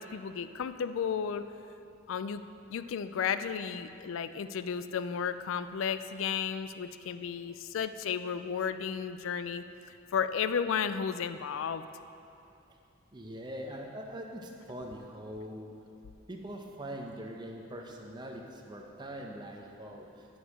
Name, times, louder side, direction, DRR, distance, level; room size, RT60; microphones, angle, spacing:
voice 1, 0.0-1.4 2.1-2.4 2.7-9.6 10.1-11.9, left 7 dB, 70° left, 12 dB, 0.3 m, -33 dB
voice 2, 13.1-15.7 16.3-20.1, equal, 20° right, 1 dB, 0.8 m, -42 dB
10.0 x 6.4 x 4.8 m, 2.8 s
head